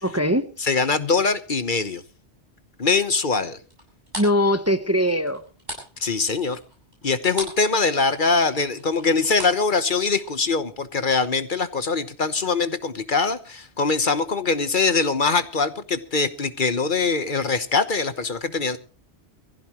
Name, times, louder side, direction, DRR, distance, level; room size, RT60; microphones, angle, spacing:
voice 1, 0.0-0.7 4.2-5.4, equal, 15° right, 0.8 m, -21 dB
voice 2, 0.6-2.0 2.8-3.6 6.0-6.6 7.0-18.8, left 4 dB, 50° left, 1.2 m, -23 dB
sound 1, 3.7-7.7 8.0-10.4, right 1 dB, 40° right, 7.6 m, -38 dB
23.0 x 16.0 x 3.0 m
omnidirectional pair, 1.1 m